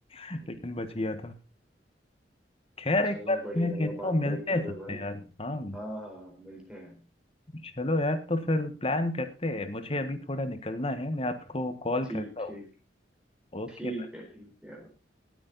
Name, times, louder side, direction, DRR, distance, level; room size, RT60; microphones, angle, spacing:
voice 1, 0.1-1.3 2.8-5.8 7.5-12.5 13.5-13.9, left 1 dB, 35° left, 10 dB, 1.5 m, -30 dB
voice 2, 3.1-5.0 5.7-7.0 12.1-12.6 13.7-14.9, equal, 5° right, 1 dB, 4.5 m, -40 dB
18.5 x 8.9 x 4.1 m, 0.34 s
head